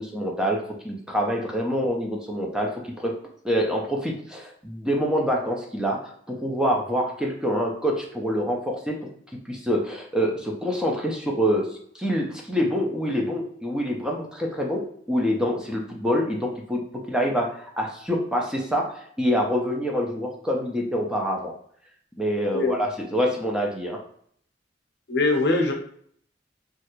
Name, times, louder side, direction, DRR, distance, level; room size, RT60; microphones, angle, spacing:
voice 1, 0.0-3.2 3.4-9.1 9.5-21.5 22.2-24.0, equal, 5° right, 0 dB, 0.4 m, -26 dB
voice 2, 25.1-25.7, left 2 dB, 65° left, 2 dB, 0.7 m, -22 dB
3.2 x 2.4 x 3.0 m, 0.64 s
head